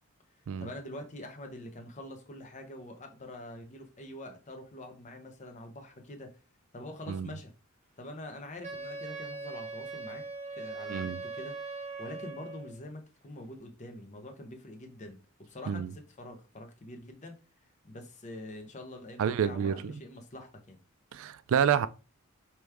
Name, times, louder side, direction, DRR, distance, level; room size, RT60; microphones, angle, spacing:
voice 1, 0.6-6.4 6.7-7.5 8.0-10.2 10.5-11.6 12.0-17.4 17.8-20.8, left 1 dB, 35° left, 0.8 m, -45 dB
Wind instrument woodwind instrument, 8.6-12.8, right 3 dB, 30° right, 1.1 m, -40 dB
voice 2, 19.2-19.9 21.1-21.9, right 8 dB, 65° right, 0.3 m, -28 dB
4.8 x 3.0 x 3.4 m
head